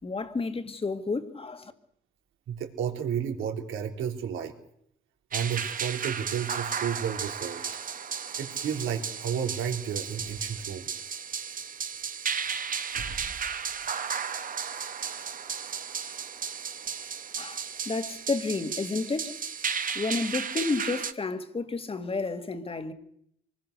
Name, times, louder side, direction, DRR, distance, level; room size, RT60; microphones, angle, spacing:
voice 1, 0.0-1.7 17.4-19.3 19.9-22.9, left 3 dB, 30° left, 2.2 m, -31 dB
voice 2, 2.5-4.5 5.3-7.6 8.4-10.9 12.9-13.2, right 8 dB, 85° right, 3.6 m, -32 dB
sound 1, 5.3-21.1, right 6 dB, 45° right, 1.4 m, -34 dB
24.5 x 20.0 x 6.6 m
cardioid pair, 90°, 20 cm